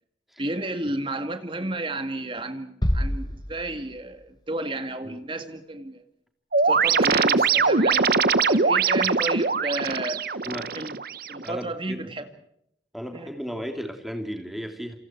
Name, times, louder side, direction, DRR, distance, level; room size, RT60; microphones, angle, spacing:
voice 1, 0.4-6.0 6.6-8.1 8.5-10.4 10.7-11.0 11.3-12.3 13.1-13.4, right 2 dB, 30° right, 2.1 m, -32 dB
sound 1, 2.8-4.4, equal, 25° left, 1.3 m, -28 dB
sound 2, 6.5-11.5, right 4 dB, 55° right, 1.0 m, -22 dB
voice 2, 11.4-12.1 12.9-15.0, equal, ahead, 3.3 m, -35 dB
28.5 x 28.0 x 4.7 m
head